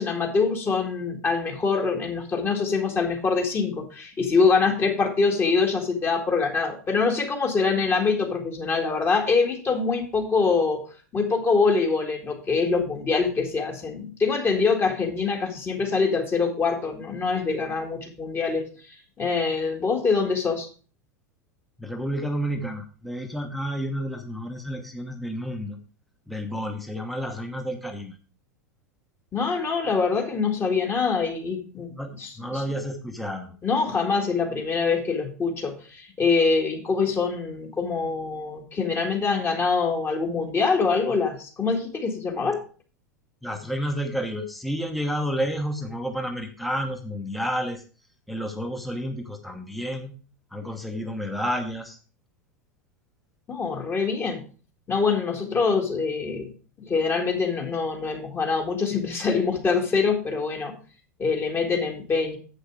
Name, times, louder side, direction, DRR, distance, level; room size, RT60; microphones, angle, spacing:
voice 1, 0.0-10.8 11.1-18.7 19.2-20.7 29.3-31.9 32.2-32.6 33.6-42.6 53.5-54.4 54.9-56.5 56.9-60.7 61.2-62.4, left 4 dB, 25° left, 2 dB, 2.0 m, -24 dB
voice 2, 21.8-25.8 26.3-28.2 31.9-33.6 43.4-47.8 48.3-50.1 50.5-52.0 61.8-61.9, equal, ahead, 5 dB, 1.0 m, -30 dB
7.9 x 6.5 x 4.8 m, 0.38 s
figure-of-eight pair, 85°, 9 cm